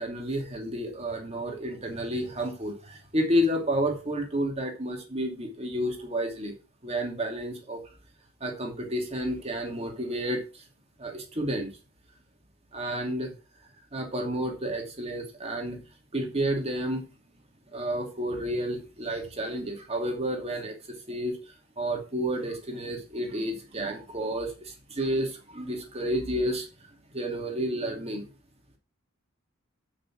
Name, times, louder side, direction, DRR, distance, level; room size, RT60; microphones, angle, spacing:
voice 1, 0.0-6.5 6.8-7.8 8.4-10.4 11.0-11.7 12.7-13.3 13.9-15.8 16.1-17.0 17.7-21.4 21.8-26.7 27.1-28.3, equal, 30° right, 3 dB, 2.6 m, -30 dB
8.2 x 6.3 x 6.2 m, 0.32 s
head